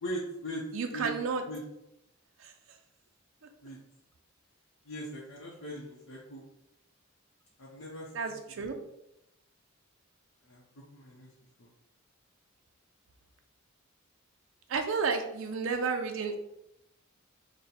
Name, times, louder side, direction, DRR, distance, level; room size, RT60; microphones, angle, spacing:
voice 1, 0.0-0.6 0.9-1.1 1.5-1.6 3.6-3.8 4.9-6.4 7.6-8.7 10.5-10.6 10.9-11.3 11.6-11.7, equal, 75° left, -5 dB, 0.7 m, -40 dB
voice 2, 0.7-1.4 2.4-2.5 8.1-8.8 14.7-16.4, right 5 dB, 70° right, 5 dB, 0.4 m, -31 dB
3.9 x 2.2 x 4.2 m, 0.82 s
head